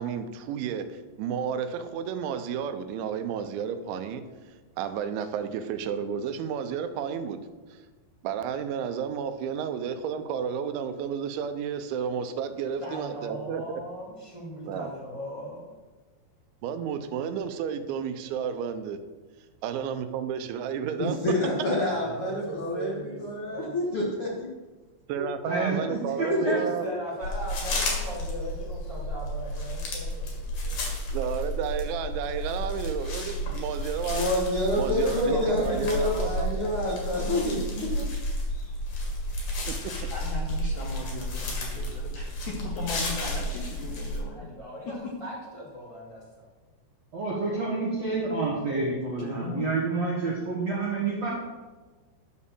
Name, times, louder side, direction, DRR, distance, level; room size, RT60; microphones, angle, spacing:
voice 1, 0.0-4.2 4.8-7.4 7.7-7.8 8.2-13.8 14.7-14.9 16.6-19.0 19.6-21.2 25.1-26.9 31.1-34.3 34.8-36.3 39.7-40.1, right 7 dB, 90° right, 9 dB, 3.1 m, -32 dB
voice 2, 12.8-15.7 21.2-23.7 26.2-30.9 35.3-37.0 44.3-44.9 45.2-46.4, equal, 30° right, -7 dB, 0.5 m, -39 dB
voice 3, 21.0-24.5 25.2-25.8 26.3-26.4 26.9-27.0 34.1-38.0, left 1 dB, 90° left, -4 dB, 1.2 m, -28 dB
voice 4, 25.4-26.6 47.1-51.3, right 3 dB, 60° right, -6 dB, 1.8 m, -28 dB
sound 1, 27.2-44.2, equal, 50° left, 3.0 m, -32 dB
voice 5, 39.8-44.5 44.9-45.0 49.2-49.8, left 4 dB, 70° left, -2 dB, 1.8 m, -38 dB
12.0 x 4.3 x 7.1 m, 1.3 s
omnidirectional pair, 5.2 m